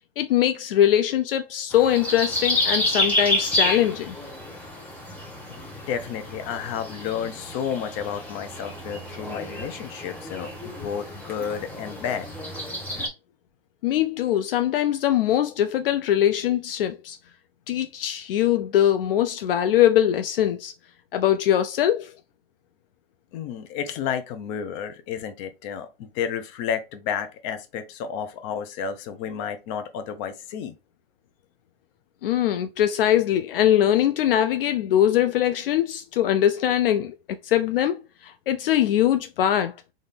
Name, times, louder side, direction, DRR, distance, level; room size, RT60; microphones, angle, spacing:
voice 1, 0.2-4.2 13.8-17.2 17.7-20.7 21.1-22.1 32.2-37.2 37.4-39.7, left 11 dB, 65° left, 0.5 m, -22 dB
Bird calls & church bells, 1.7-13.1, left 1 dB, 5° left, 0.9 m, -29 dB
voice 2, 5.9-12.3 23.3-30.7, left 8 dB, 35° left, 0.7 m, -31 dB
4.1 x 2.6 x 3.4 m
hypercardioid pair, 135°, 30 cm